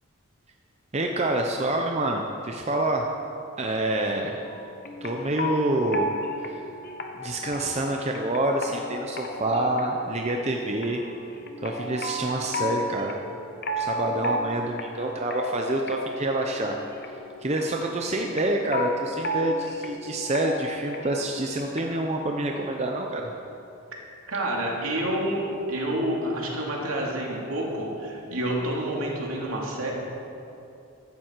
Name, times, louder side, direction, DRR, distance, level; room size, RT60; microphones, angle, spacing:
voice 1, 0.9-3.1 3.6-4.4 5.0-6.1 6.4-6.6 7.1-11.0 11.6-13.2 13.8-16.8 17.4-23.3, right 1 dB, 30° right, 2 dB, 0.7 m, -27 dB
sound 1, 4.4-22.1, left 1 dB, 45° left, 0.9 m, -34 dB
voice 2, 24.3-25.4 25.7-29.9, right 1 dB, 75° right, -2 dB, 2.6 m, -28 dB
15.5 x 11.5 x 4.6 m, 2.8 s
head